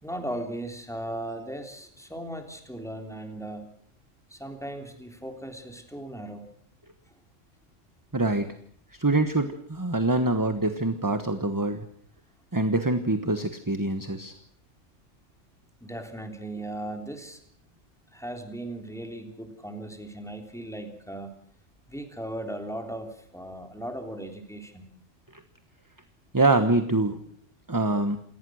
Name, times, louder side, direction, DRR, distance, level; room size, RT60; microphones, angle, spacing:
voice 1, 0.0-3.8 4.3-6.5 15.8-17.4 18.1-21.3 21.9-24.9, right 1 dB, ahead, 5 dB, 3.4 m, -37 dB
voice 2, 8.1-8.5 9.0-11.8 12.5-14.3 26.3-27.2 27.7-28.2, right 2 dB, 15° right, 9 dB, 1.2 m, -24 dB
28.0 x 18.5 x 6.4 m, 0.62 s
omnidirectional pair, 1.3 m